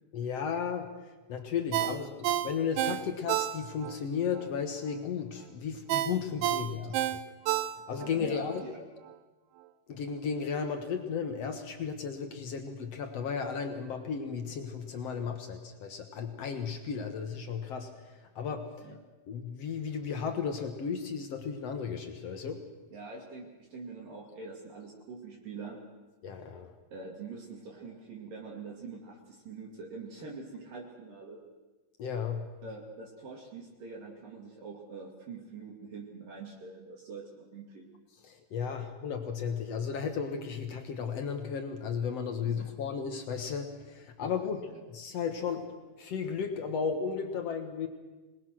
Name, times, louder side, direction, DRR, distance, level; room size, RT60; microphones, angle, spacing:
voice 1, 0.1-7.0 7.9-8.6 9.9-18.9 19.3-22.6 26.2-26.7 32.0-32.5 38.2-45.7 46.0-47.9, left 6 dB, 75° left, 6 dB, 1.4 m, -34 dB
Ringtone, 1.7-4.0 4.4-4.5 5.9-8.1 8.5-8.6, right 13 dB, 75° right, 2.5 m, -30 dB
voice 2, 6.7-7.3 8.0-8.8 18.8-19.3 22.9-25.8 26.9-31.4 32.6-37.9 42.4-42.7 44.7-44.8, right 4 dB, 55° right, -1 dB, 3.8 m, -45 dB
26.0 x 20.5 x 6.3 m, 1.2 s
omnidirectional pair, 5.0 m